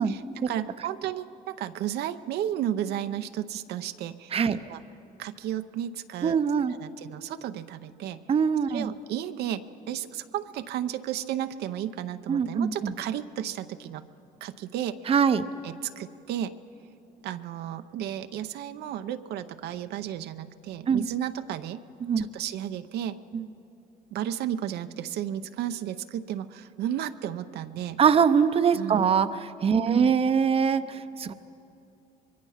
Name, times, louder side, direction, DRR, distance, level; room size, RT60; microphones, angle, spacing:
voice 1, 0.0-4.8 5.2-6.4 6.7-8.2 8.7-14.1 14.4-15.1 15.6-16.5 17.2-21.8 22.2-23.2 24.1-28.0 28.7-29.0 29.9-30.1, right 10 dB, 75° right, 9 dB, 0.7 m, -33 dB
voice 2, 6.2-6.7 8.3-8.9 12.3-12.9 15.1-15.4 20.9-21.1 22.0-22.3 23.3-23.4 28.0-31.3, right 6 dB, 35° right, 11 dB, 0.7 m, -23 dB
24.5 x 22.0 x 5.7 m, 2.7 s
cardioid pair, 110°, 17 cm